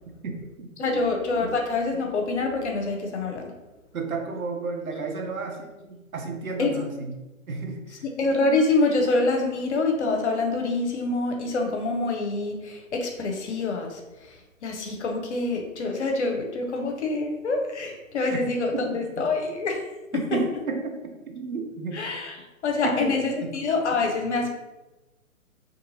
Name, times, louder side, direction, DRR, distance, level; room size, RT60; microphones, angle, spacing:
voice 1, 0.2-1.2 1.4-1.6 3.9-7.1 7.5-8.0 18.3-18.4 18.7-19.0 20.1-22.0 22.8-23.5, right 4 dB, 80° right, 3 dB, 0.7 m, -32 dB
voice 2, 0.8-3.4 6.6-6.7 8.0-14.0 14.6-19.8 20.1-20.4 21.9-22.3 22.6-24.5, left 3 dB, 55° left, 2 dB, 0.6 m, -26 dB
2.6 x 2.5 x 2.7 m, 1.1 s
figure-of-eight pair, 130°, 41 cm